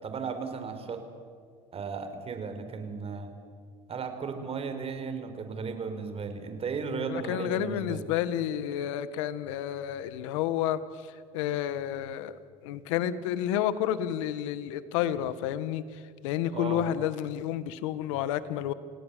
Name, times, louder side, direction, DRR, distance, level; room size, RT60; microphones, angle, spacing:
voice 1, 0.0-1.0 1.7-3.3 3.9-8.1 16.5-16.9, right 5 dB, 40° right, 8 dB, 4.5 m, -35 dB
voice 2, 7.1-10.8 11.3-12.3 12.6-18.7, left 11 dB, 85° left, 15 dB, 1.4 m, -30 dB
29.5 x 17.0 x 8.4 m, 2.1 s
supercardioid pair, 90°, 16 cm